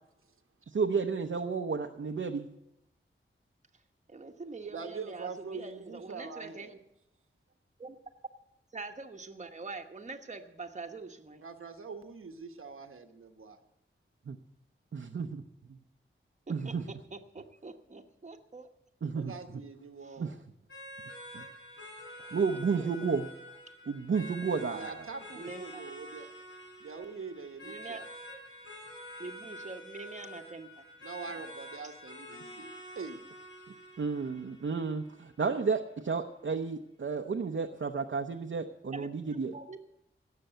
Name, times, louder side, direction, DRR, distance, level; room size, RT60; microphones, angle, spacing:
voice 1, 0.7-2.5 14.3-14.4 14.9-15.4 16.5-16.8 19.0-19.3 20.2-20.3 21.3-21.4 22.3-23.3 23.9-25.0 34.0-39.5, right 5 dB, 65° right, 3 dB, 0.8 m, -32 dB
voice 2, 4.1-6.8 7.8-8.0 8.7-11.4 16.5-18.7 19.0-19.1 20.0-20.2 22.1-22.3 22.7-22.9 25.4-25.8 27.6-28.0 29.2-30.9 31.3-31.4 31.8-31.9 38.9-39.1 39.5-39.8, right 3 dB, 35° right, 4 dB, 1.1 m, -44 dB
voice 3, 4.7-6.7 11.4-13.6 19.1-20.4 24.7-26.3 26.8-28.0 31.0-33.2, right 4 dB, 85° right, 5 dB, 1.2 m, -44 dB
sound 1, 20.7-35.7, equal, 60° left, 4.3 m, -47 dB
17.0 x 6.9 x 7.9 m, 0.85 s
wide cardioid pair, 85°, 21 cm